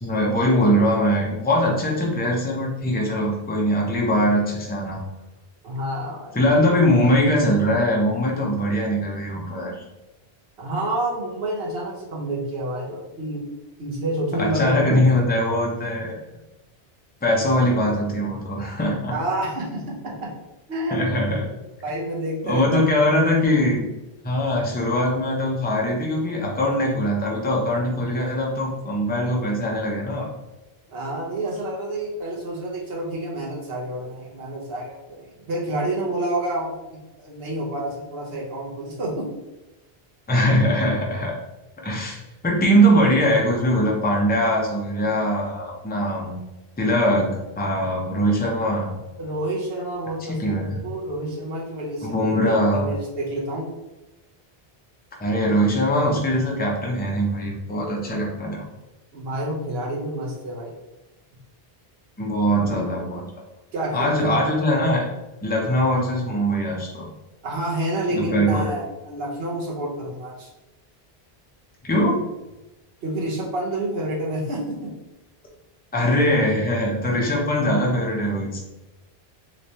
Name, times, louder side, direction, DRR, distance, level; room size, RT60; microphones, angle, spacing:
voice 1, 0.0-5.0 6.3-9.8 14.4-16.2 17.2-19.1 20.9-21.5 22.4-23.9 24.2-30.3 40.3-41.4 41.8-46.4 46.8-47.3 47.6-48.9 50.2-50.8 52.0-52.9 55.2-58.7 62.2-63.3 63.9-65.1 65.4-67.1 68.1-68.7 71.8-72.2 75.9-78.6, equal, 10° left, -2 dB, 0.5 m, -21 dB
voice 2, 5.6-6.3 10.6-13.4 13.8-15.3 19.1-20.3 20.7-21.1 21.8-22.8 30.9-36.7 37.2-39.3 49.2-53.7 58.0-58.1 59.1-60.7 63.7-64.5 67.4-70.5 73.0-74.9, right 1 dB, 70° right, -3 dB, 1.0 m, -29 dB
3.2 x 3.1 x 2.7 m, 1.0 s
omnidirectional pair, 1.0 m